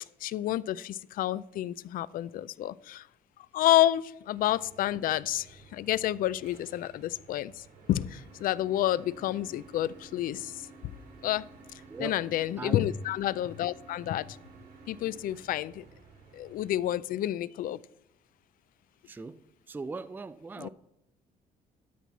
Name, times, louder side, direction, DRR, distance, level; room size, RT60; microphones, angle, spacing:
voice 1, 0.2-3.1 3.5-10.5 11.2-11.5 12.0-14.4 14.9-15.9 16.3-17.8 20.6-20.7, left 13 dB, 60° left, 0.4 m, -29 dB
sound 1, 4.3-16.7, right 3 dB, 75° right, 2.7 m, -53 dB
voice 2, 11.9-12.2 12.6-12.8 19.0-20.7, right 4 dB, 10° right, 0.3 m, -40 dB
13.0 x 5.9 x 4.1 m
cardioid pair, 105°, 16 cm